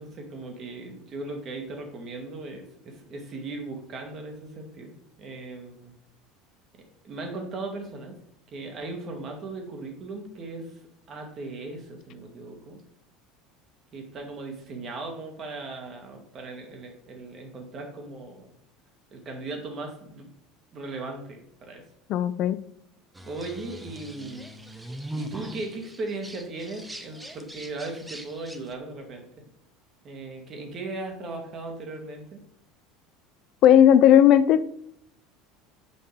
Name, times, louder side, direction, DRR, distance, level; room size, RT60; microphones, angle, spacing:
voice 1, 0.0-5.9 7.0-8.1 8.5-12.8 13.9-18.5 19.1-20.3 20.7-21.8 23.2-24.5 25.1-29.3 30.0-32.4, right 2 dB, 40° right, 3 dB, 1.8 m, -37 dB
voice 2, 22.1-22.6 33.6-34.7, left 10 dB, 50° left, 14 dB, 0.4 m, -16 dB
sound 1, 23.1-28.7, right 1 dB, 10° right, 0.9 m, -41 dB
7.2 x 5.4 x 3.4 m, 0.70 s
figure-of-eight pair, 70°, 0 cm